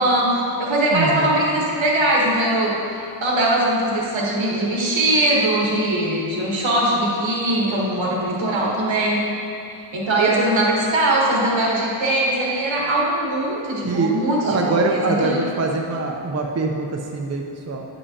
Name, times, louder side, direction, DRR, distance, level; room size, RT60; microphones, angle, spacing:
voice 1, 0.0-9.2 9.9-15.6, right 1 dB, 80° right, -3 dB, 1.4 m, -21 dB
voice 2, 0.9-1.3 10.2-10.3 13.8-17.9, right 3 dB, 35° right, 1 dB, 0.6 m, -23 dB
9.6 x 5.4 x 2.8 m, 2.7 s
cardioid pair, 65°, 46 cm